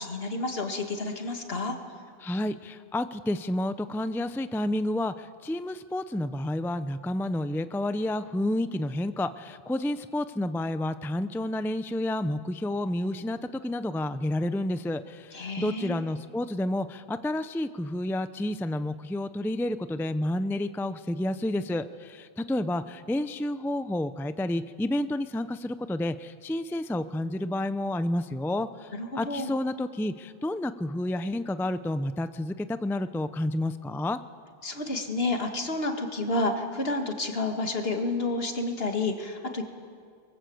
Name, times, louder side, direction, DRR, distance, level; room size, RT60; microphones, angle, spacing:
voice 1, 0.0-1.8 15.3-16.0 28.9-29.5 34.6-39.6, left 2 dB, 70° left, 4 dB, 2.3 m, -30 dB
voice 2, 2.2-34.2, left 1 dB, 5° left, 12 dB, 0.4 m, -30 dB
23.0 x 22.5 x 7.9 m, 2.2 s
omnidirectional pair, 1.0 m